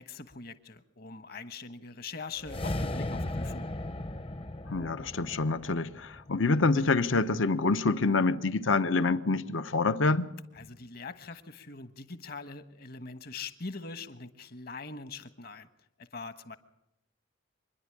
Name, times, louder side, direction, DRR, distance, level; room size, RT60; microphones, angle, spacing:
voice 1, 0.0-3.7 10.5-15.7 16.0-16.6, left 4 dB, 50° left, 1.3 m, -42 dB
sound 1, 2.4-6.8, left 1 dB, 30° left, 0.7 m, -36 dB
voice 2, 4.7-10.3, left 3 dB, 85° left, 1.0 m, -26 dB
25.5 x 10.5 x 9.9 m
head